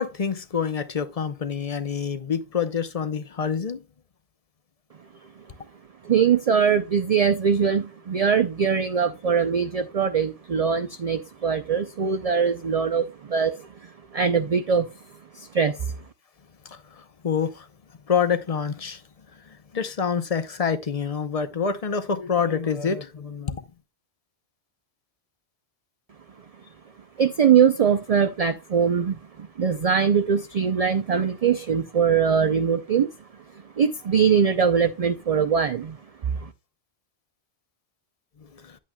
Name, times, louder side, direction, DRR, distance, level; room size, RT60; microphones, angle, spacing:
voice 1, 0.0-3.8 16.7-17.7 18.1-19.0 19.7-23.6 38.5-38.8, left 6 dB, 40° left, 0.7 m, -27 dB
voice 2, 6.0-13.7 14.1-14.9 15.3-15.9 27.2-33.1 33.8-36.0 36.3-36.5, right 7 dB, 50° right, 0.5 m, -22 dB
10.0 x 8.4 x 2.2 m
omnidirectional pair, 1.1 m